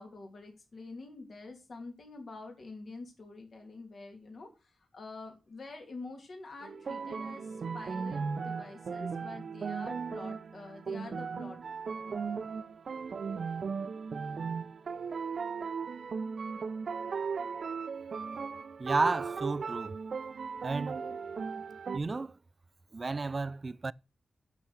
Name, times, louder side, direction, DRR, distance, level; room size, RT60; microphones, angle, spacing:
voice 1, 0.0-11.6, left 3 dB, 60° left, 2.8 m, -47 dB
sound 1, 6.6-22.0, right 5 dB, 65° right, 0.8 m, -37 dB
voice 2, 18.8-20.0 20.6-21.0 21.9-22.4 22.9-23.9, right 3 dB, 40° right, 0.4 m, -32 dB
8.4 x 7.0 x 6.3 m
cardioid pair, 85°, 0 cm